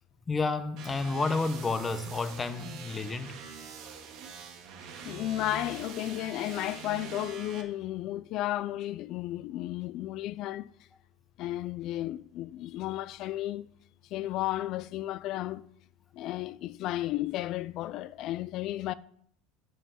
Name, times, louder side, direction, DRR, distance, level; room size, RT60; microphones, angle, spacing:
voice 1, 0.3-3.4, left 3 dB, 20° left, 0.9 m, -30 dB
sound 1, 0.8-7.6, right 6 dB, 55° right, 1.5 m, -44 dB
voice 2, 5.0-10.7 11.4-13.7 14.1-15.6 16.1-18.9, left 14 dB, 50° left, 0.3 m, -33 dB
7.4 x 5.6 x 7.2 m
supercardioid pair, 130°, 0 cm